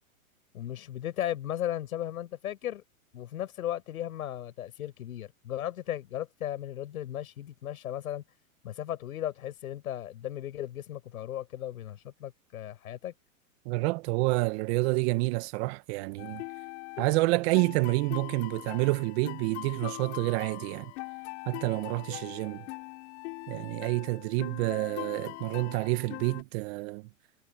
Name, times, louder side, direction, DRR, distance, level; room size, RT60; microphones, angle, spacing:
voice 1, 0.5-2.8 3.1-8.2 8.6-13.1, left 12 dB, 80° left, 7.9 m, -36 dB
voice 2, 13.6-16.4 17.0-20.9 21.5-22.7 23.5-27.1, right 23 dB, 45° right, 1.2 m, -28 dB
sound 1, 16.2-26.4, left 26 dB, 50° left, 3.6 m, -42 dB
hypercardioid pair, 135°, 43 cm